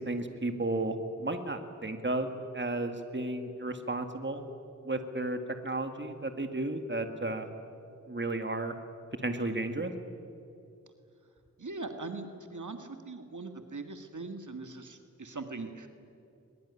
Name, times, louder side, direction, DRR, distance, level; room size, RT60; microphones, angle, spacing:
voice 1, 0.0-4.4 4.9-7.5 8.1-8.7 9.2-9.9, right 2 dB, 40° right, 7 dB, 2.1 m, -33 dB
voice 2, 11.6-15.9, right 3 dB, 80° right, 6 dB, 1.9 m, -41 dB
22.0 x 21.5 x 9.8 m, 2.6 s
wide cardioid pair, 55°, 30 cm